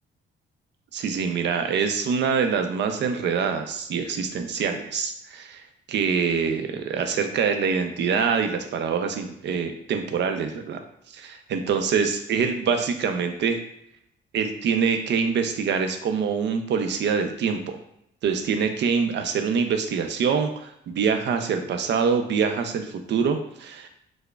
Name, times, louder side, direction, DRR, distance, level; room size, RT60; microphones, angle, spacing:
voice 1, 0.9-5.6 5.9-10.8 11.1-13.6 14.3-17.8 18.2-23.9, right 6 dB, 65° right, 6 dB, 0.5 m, -25 dB
4.7 x 2.1 x 2.3 m, 0.78 s
cardioid pair, 90°, 20 cm